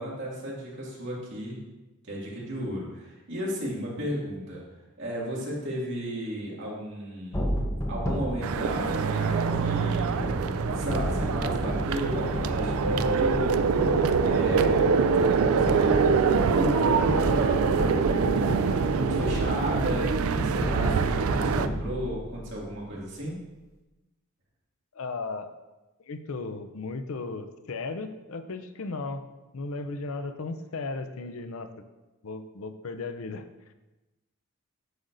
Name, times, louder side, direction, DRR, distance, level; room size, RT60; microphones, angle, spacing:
voice 1, 0.0-1.6 2.1-4.6 5.0-7.4 7.9-10.2 10.7-13.6 14.2-23.4, right 1 dB, 55° right, -5 dB, 2.2 m, -34 dB
sound 1, 7.3-22.6, equal, 15° left, 0.8 m, -32 dB
sound 2, 8.4-21.7, right 5 dB, 75° right, 0.3 m, -25 dB
voice 2, 24.9-25.5 26.1-29.2 29.5-31.7 32.2-33.4, left 3 dB, 70° left, 9 dB, 0.5 m, -35 dB
9.3 x 6.3 x 2.6 m, 1.1 s
head